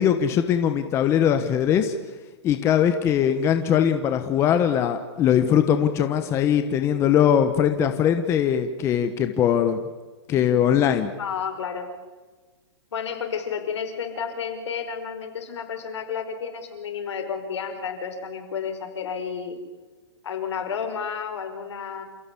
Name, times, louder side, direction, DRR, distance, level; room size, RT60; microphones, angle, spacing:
voice 1, 0.0-1.9 2.4-9.8 10.3-11.1, left 9 dB, 20° left, 8 dB, 1.2 m, -21 dB
voice 2, 11.2-11.9 12.9-19.6 20.2-22.0, left 6 dB, 70° left, 7 dB, 5.3 m, -31 dB
28.5 x 16.5 x 8.5 m, 1.3 s
hypercardioid pair, 160°, 15 cm